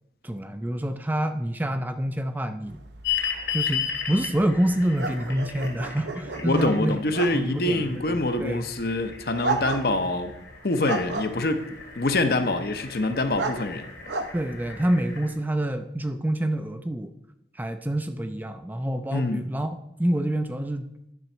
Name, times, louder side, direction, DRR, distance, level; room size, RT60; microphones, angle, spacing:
voice 1, 0.2-2.8 3.5-7.0 7.3-8.7 14.3-17.1 17.5-20.9, right 1 dB, 10° right, 8 dB, 0.4 m, -27 dB
sound 1, 2.7-15.2, right 3 dB, 75° right, 0.8 m, -35 dB
sound 2, 3.0-15.3, left 8 dB, 75° left, 2.3 m, -36 dB
voice 2, 6.4-10.3 10.6-11.6 12.0-13.8 19.1-19.4, left 2 dB, 55° left, 8 dB, 0.7 m, -25 dB
11.0 x 6.0 x 4.4 m, 0.84 s
head